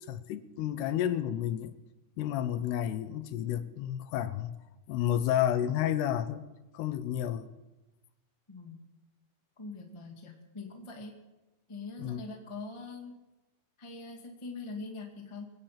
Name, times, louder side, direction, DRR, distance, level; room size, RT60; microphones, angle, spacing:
voice 1, 0.0-1.8 2.2-4.5 4.9-6.5 6.7-7.5 12.0-12.2, left 11 dB, 80° left, 2.8 m, -31 dB
voice 2, 8.5-8.8 9.6-11.2 11.7-13.2 13.8-15.5, left 3 dB, 20° left, 0.8 m, -43 dB
24.5 x 8.9 x 5.8 m
omnidirectional pair, 4.7 m